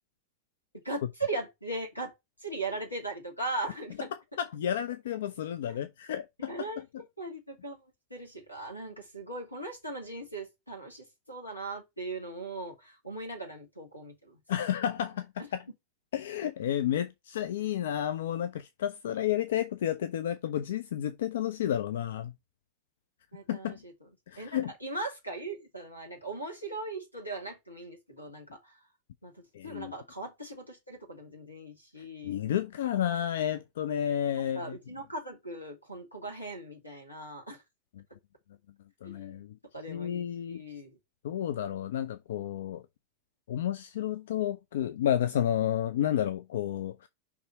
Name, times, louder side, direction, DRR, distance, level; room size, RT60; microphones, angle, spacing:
voice 1, 0.8-2.1 2.4-4.1 5.7-5.8 6.5-6.8 7.2-7.8 8.1-14.4 23.3-23.9 24.4-28.8 29.2-29.3 29.6-32.4 34.3-37.6 39.0-39.4 39.7-41.0, right 2 dB, 85° left, 2.2 m, -39 dB
voice 2, 4.4-6.8 14.5-15.6 16.1-22.3 23.5-23.7 24.3-24.7 29.5-29.9 32.2-34.8 39.0-39.6 39.9-40.6 41.2-42.8 43.5-47.1, left 10 dB, 60° left, 0.4 m, -31 dB
5.5 x 3.5 x 5.2 m
figure-of-eight pair, 90°, 0 cm